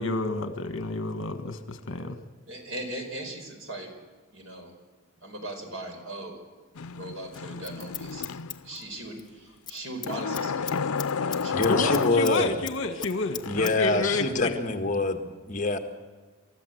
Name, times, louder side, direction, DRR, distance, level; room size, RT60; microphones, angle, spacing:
voice 1, 0.0-2.2 11.6-14.6, left 3 dB, 60° left, 8 dB, 1.7 m, -29 dB
voice 2, 2.5-3.9 4.3-4.7 5.2-6.4 6.9-8.2 8.6-10.7 11.2-11.8 13.5-13.6, right 1 dB, 65° right, 4 dB, 5.0 m, -39 dB
sound 1, 6.8-8.8 10.1-12.7 13.2-14.3, left 5 dB, 85° left, 0.6 m, -32 dB
Scissors, 7.3-9.3 9.6-9.8 10.0-12.4 12.6-13.7 14.0-14.1, left 8 dB, 20° left, 0.9 m, -38 dB
voice 3, 11.5-12.5 13.4-15.8, left 2 dB, 35° left, 5 dB, 1.6 m, -25 dB
28.5 x 13.5 x 8.0 m, 1.4 s
head